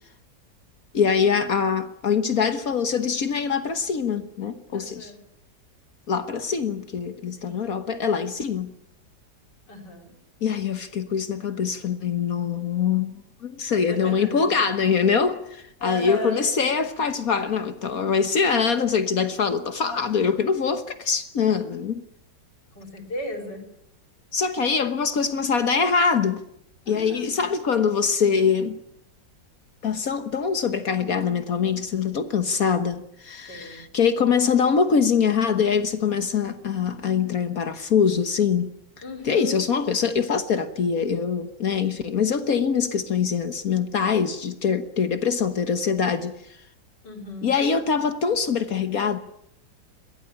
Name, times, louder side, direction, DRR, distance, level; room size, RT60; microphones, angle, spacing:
voice 1, 0.9-5.1 6.1-8.7 10.4-22.0 24.3-26.4 26.9-28.8 29.8-38.7 39.2-46.3 47.4-49.2, left 6 dB, 55° left, 1.6 m, -23 dB
voice 2, 4.7-5.2 7.4-7.7 9.7-10.1 13.9-14.6 15.8-16.5 22.8-23.7 26.9-27.3 33.5-33.8 39.0-39.6 47.0-47.5, left 2 dB, 70° left, 5.3 m, -35 dB
22.5 x 16.5 x 9.9 m
omnidirectional pair, 1.9 m